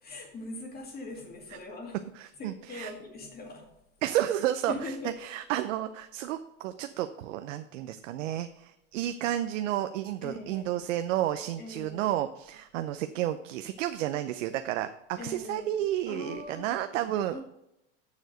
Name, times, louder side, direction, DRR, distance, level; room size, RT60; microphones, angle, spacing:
voice 1, 0.0-2.0 2.4-3.7 4.7-5.2 10.2-10.8 11.6-12.1 15.2-15.8 16.1-16.8 17.3-17.4, left 2 dB, 25° left, 2 dB, 2.2 m, -41 dB
voice 2, 2.2-2.9 4.0-17.4, right 12 dB, 85° right, 9 dB, 0.7 m, -31 dB
7.1 x 6.5 x 6.5 m, 0.84 s
supercardioid pair, 140°, 37 cm